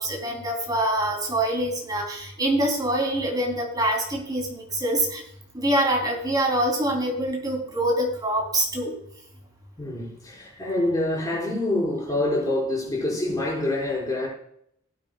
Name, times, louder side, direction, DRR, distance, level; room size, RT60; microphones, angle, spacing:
voice 1, 0.0-5.2 5.5-8.9, right 1 dB, 20° right, 3.4 m, -25 dB
voice 2, 9.8-14.3, left 1 dB, 20° left, 4.9 m, -26 dB
19.0 x 8.4 x 2.4 m
head